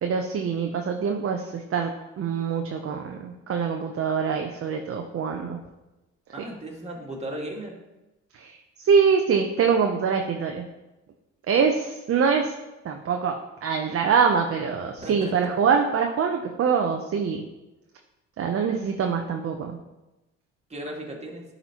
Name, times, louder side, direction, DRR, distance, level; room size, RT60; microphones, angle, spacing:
voice 1, 0.0-1.9 2.2-5.6 8.3-10.6 11.5-12.5 12.8-17.4 18.4-19.8, right 6 dB, 45° right, 3 dB, 0.7 m, -24 dB
voice 2, 6.3-7.8 15.0-15.5 20.7-21.4, right 1 dB, 20° right, -1 dB, 2.0 m, -36 dB
11.0 x 4.1 x 3.0 m, 1.0 s
hypercardioid pair, 60°, 33 cm